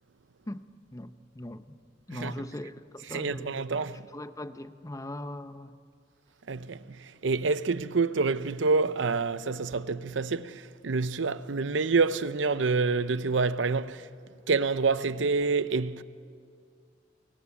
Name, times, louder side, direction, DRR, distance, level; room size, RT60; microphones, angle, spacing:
voice 1, 0.9-1.8 2.1-3.6 4.1-5.7, left 1 dB, 20° left, 0.8 m, -40 dB
voice 2, 3.1-4.1 6.5-14.1 14.5-16.0, right 4 dB, 80° right, 0.7 m, -27 dB
27.0 x 22.5 x 8.5 m
head